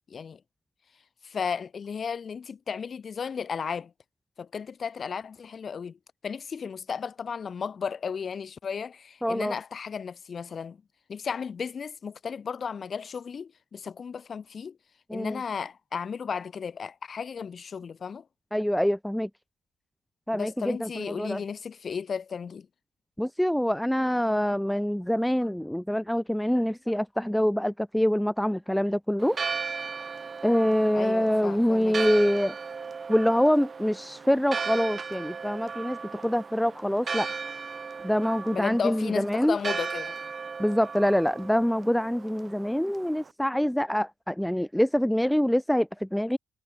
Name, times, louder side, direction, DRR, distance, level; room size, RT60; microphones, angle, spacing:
voice 1, 1.2-3.9 4.4-6.0 6.2-10.8 11.1-14.8 15.1-18.2 20.3-22.7 30.9-32.1 38.5-40.2, left 6 dB, 45° left, 2.7 m, -34 dB
voice 2, 9.2-9.5 15.1-15.4 18.5-19.3 20.3-21.4 23.2-29.4 30.4-32.5 33.1-37.3 38.0-39.6 40.6-46.4, equal, 5° left, 0.6 m, -25 dB
Church bell, 29.2-43.3, right 5 dB, 35° right, 2.0 m, -36 dB
cardioid pair, 90°, 0 cm